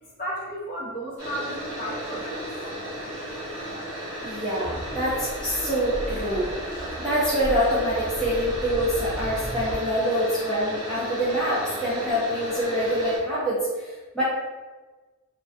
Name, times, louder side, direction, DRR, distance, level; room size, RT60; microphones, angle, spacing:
voice 1, 0.0-2.4, right 1 dB, 40° left, -6 dB, 0.7 m, -33 dB
sound 1, 1.2-13.2, right 1 dB, 15° right, 1.0 m, -34 dB
voice 2, 4.2-6.5 7.0-14.2, equal, 5° left, -11 dB, 0.5 m, -25 dB
sound 2, 4.6-9.8, equal, 90° right, 0.5 m, -36 dB
2.3 x 2.2 x 2.5 m, 1.3 s
head